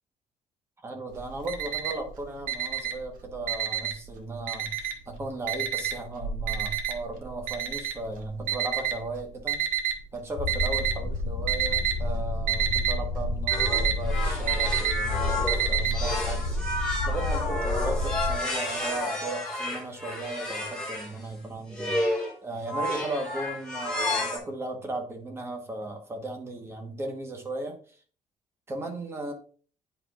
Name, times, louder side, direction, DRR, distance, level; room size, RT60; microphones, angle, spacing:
voice 1, 0.8-9.6 10.1-27.8 28.7-29.3, right 2 dB, 20° right, 3 dB, 1.2 m, -36 dB
Alarm, 1.1-2.1 2.4-4.1 4.5-5.1 5.5-9.9 10.5-11.1 11.4-12.0 12.3-15.9, right 9 dB, 90° right, 1.2 m, -28 dB
sound 1, 10.4-18.4, left 2 dB, 75° left, 1.3 m, -30 dB
sound 2, 13.5-21.1 21.7-22.3 22.7-24.4, left 1 dB, 5° left, 2.0 m, -31 dB
9.7 x 4.9 x 2.4 m, 0.42 s
cardioid pair, 170°, 14 cm